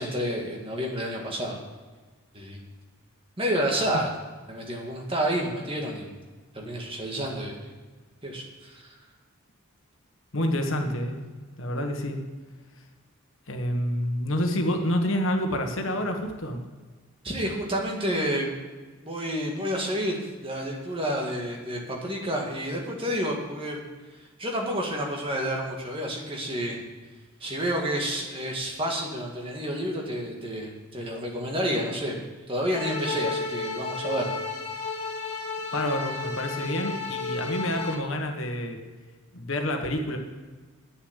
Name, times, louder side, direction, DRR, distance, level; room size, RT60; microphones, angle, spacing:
voice 1, 0.0-1.6 2.3-2.6 3.4-4.1 4.5-6.1 6.5-7.6 8.2-8.9 17.2-18.5 19.0-23.8 24.4-26.8 27.4-34.3, equal, 25° right, 0 dB, 1.7 m, -29 dB
voice 2, 10.3-11.2 11.6-12.2 13.5-16.6 35.7-38.8 39.3-40.2, left 1 dB, 70° left, 4 dB, 1.3 m, -28 dB
sound 1, 32.7-37.9, left 4 dB, 90° left, 1.4 m, -32 dB
9.7 x 7.0 x 8.1 m, 1.4 s
head